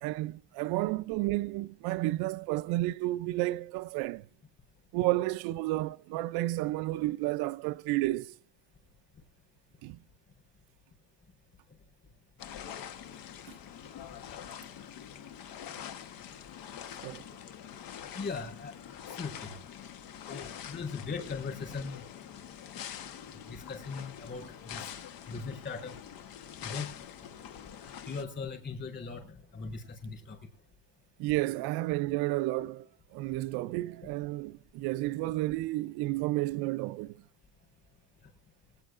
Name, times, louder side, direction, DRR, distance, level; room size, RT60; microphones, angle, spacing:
voice 1, 0.0-4.3 4.9-8.4 9.8-10.0 13.5-13.6 17.0-17.2 31.2-37.2, right 18 dB, 85° right, 0.5 m, -31 dB
sound 1, 12.4-28.2, left 9 dB, 70° left, 1.2 m, -45 dB
voice 2, 18.2-18.9 19.2-19.5 20.3-22.0 23.5-24.8 25.3-26.0 26.6-26.9 28.1-29.2 29.5-30.4, left 4 dB, 30° left, 4.3 m, -39 dB
24.0 x 8.9 x 2.4 m
cardioid pair, 135°, 36 cm